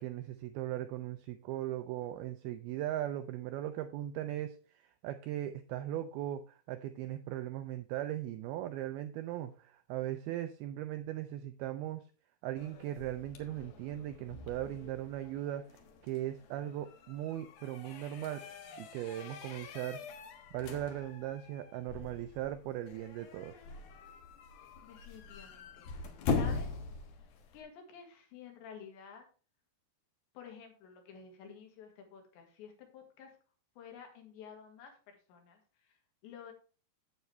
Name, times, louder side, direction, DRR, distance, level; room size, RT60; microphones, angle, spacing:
voice 1, 0.0-12.0 12.4-18.4 18.8-20.0 20.5-23.5, right 13 dB, 85° right, 9 dB, 2.2 m, -38 dB
sound 1, 12.6-27.6, left 4 dB, 65° left, 3.0 m, -42 dB
voice 2, 24.8-26.8 27.5-29.3 30.3-33.4 33.8-36.5, left 7 dB, 85° left, 3 dB, 4.2 m, -52 dB
9.5 x 7.8 x 3.3 m, 0.37 s
omnidirectional pair, 5.0 m